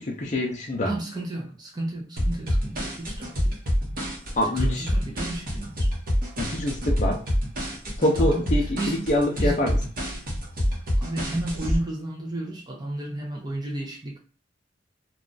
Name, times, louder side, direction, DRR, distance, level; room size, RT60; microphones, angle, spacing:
voice 1, 0.0-0.9 4.4-4.9 6.4-7.2 8.0-9.8, left 1 dB, 40° left, 0.5 m, -25 dB
voice 2, 0.9-3.5 4.5-5.9 8.2-9.1 9.4-9.7 11.0-14.2, right 1 dB, 20° right, 0.5 m, -33 dB
sound 1, 2.2-11.8, equal, 50° right, 0.9 m, -26 dB
2.4 x 2.3 x 3.8 m
head